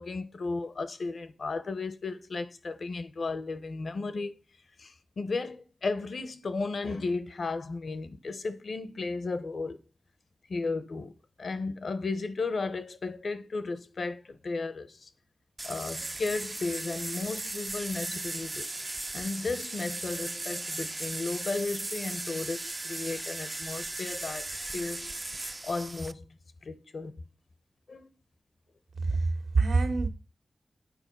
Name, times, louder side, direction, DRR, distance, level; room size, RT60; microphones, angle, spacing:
voice 1, 0.0-4.4 4.8-9.8 10.5-11.1 11.4-15.1 15.6-18.7 19.1-24.5 24.7-25.2 25.6-26.4 26.6-27.1 27.9-28.1, left 3 dB, 65° left, 0.9 m, -34 dB
sound 1, 15.6-26.1, right 2 dB, 25° right, 0.3 m, -37 dB
voice 2, 29.0-30.1, right 3 dB, 85° right, 1.6 m, -26 dB
8.8 x 4.8 x 5.3 m
wide cardioid pair, 105°, 0 cm